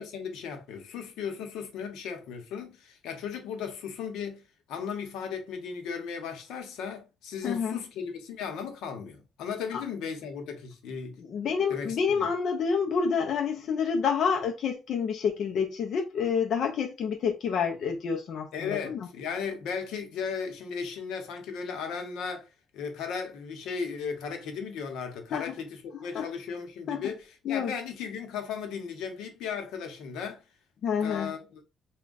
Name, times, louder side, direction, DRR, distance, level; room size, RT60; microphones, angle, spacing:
voice 1, 0.0-4.4 4.7-11.2 11.7-12.3 18.5-30.4 31.0-31.6, left 6 dB, 75° left, 0.8 m, -36 dB
voice 2, 7.4-7.8 9.7-9.8 11.2-19.0 25.3-25.5 25.9-26.3 26.9-27.1 27.4-27.7 30.8-31.3, left 6 dB, 45° left, 0.5 m, -28 dB
3.4 x 2.2 x 3.9 m
cardioid pair, 170°, 0 cm